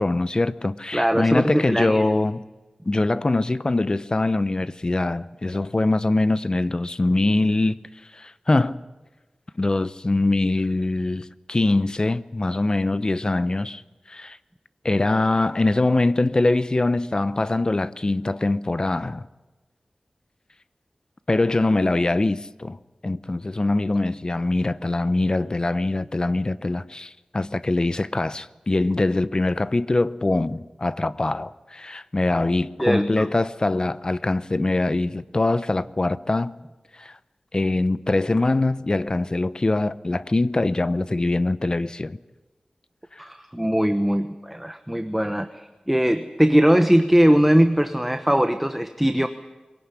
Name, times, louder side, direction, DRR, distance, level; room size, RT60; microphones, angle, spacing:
voice 1, 0.0-2.4 2.8-7.8 8.1-8.8 9.6-13.8 14.1-14.4 14.8-19.3 21.3-22.8 23.0-36.5 37.0-37.2 37.5-42.2 43.1-43.2, left 2 dB, 35° left, 0.8 m, -23 dB
voice 2, 0.9-2.1 32.8-33.3 43.2-49.3, equal, 5° right, 1.1 m, -20 dB
23.0 x 17.5 x 9.8 m
wide cardioid pair, 70°, 2 cm